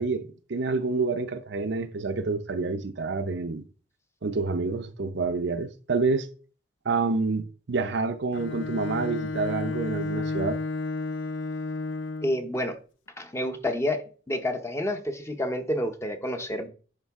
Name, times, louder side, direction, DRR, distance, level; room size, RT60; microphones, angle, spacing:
voice 1, 0.0-3.6 4.2-6.3 6.9-10.6, right 4 dB, 60° right, 0.6 m, -28 dB
Bowed string instrument, 8.3-12.5, left 3 dB, 75° left, 0.6 m, -32 dB
voice 2, 12.2-12.8 13.2-16.7, left 1 dB, 15° left, 0.8 m, -29 dB
10.5 x 3.8 x 3.6 m
head